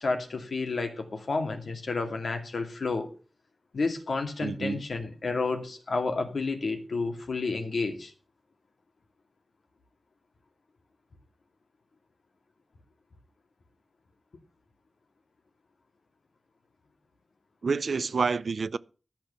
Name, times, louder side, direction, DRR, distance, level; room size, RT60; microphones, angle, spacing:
voice 1, 0.0-3.1 3.7-8.1, left 3 dB, 75° left, 2.3 m, -30 dB
voice 2, 4.4-4.8 17.6-18.8, right 4 dB, 75° right, 0.5 m, -28 dB
13.0 x 6.1 x 7.1 m
wide cardioid pair, 75°, 0 cm